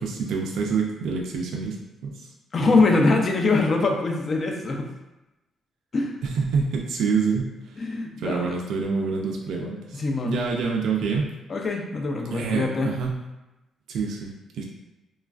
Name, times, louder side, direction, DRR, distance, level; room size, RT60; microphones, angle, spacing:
voice 1, 0.0-1.8 2.0-2.1 2.8-2.9 6.2-7.8 8.2-11.3 12.3-13.2 13.9-14.6, right 5 dB, 75° right, 0 dB, 0.3 m, -27 dB
voice 2, 2.5-4.9 5.9-6.2 7.8-8.4 9.9-10.4 11.5-12.9, left 3 dB, 45° left, 2 dB, 0.4 m, -23 dB
3.1 x 2.3 x 2.3 m, 1.0 s
cardioid pair, 90°, 0 cm